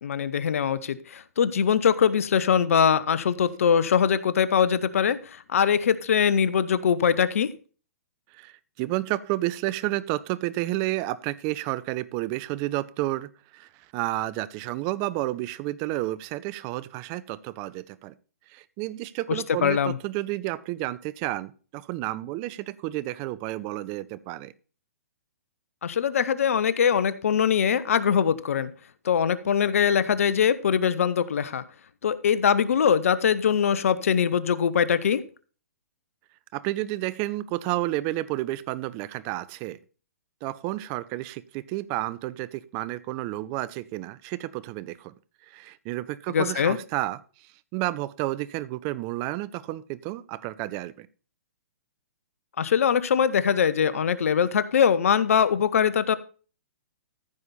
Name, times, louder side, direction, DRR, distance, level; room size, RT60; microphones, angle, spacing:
voice 1, 0.0-5.2 5.5-7.5 19.6-20.0 25.8-28.7 29.0-31.6 32.0-35.2 46.3-46.8 52.6-56.1, left 7 dB, 65° left, 15 dB, 1.1 m, -22 dB
voice 2, 8.3-18.1 18.5-24.5 36.5-39.8 40.4-45.1 45.5-47.2 47.7-51.1, right 17 dB, 35° right, 17 dB, 0.8 m, -31 dB
14.5 x 7.0 x 4.3 m, 0.37 s
hypercardioid pair, 125°, 8 cm